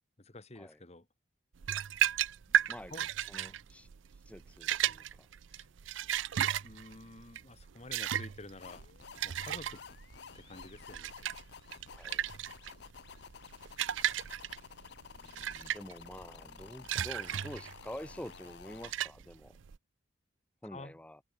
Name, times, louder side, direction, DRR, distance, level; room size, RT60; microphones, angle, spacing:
voice 1, 0.2-1.0 2.5-2.6 2.9-3.0 5.6-5.7 6.6-8.9 9.2-9.8 10.3-11.1 20.6-21.0, left 2 dB, 35° left, 1.7 m, -50 dB
sound 1, 1.6-19.8, right 10 dB, 85° right, 0.5 m, -35 dB
voice 2, 2.7-5.3 11.9-12.2 15.1-19.6 20.6-21.2, left 1 dB, 5° left, 1.1 m, -48 dB
sound 2, 8.6-18.9, left 6 dB, 60° left, 0.6 m, -52 dB
head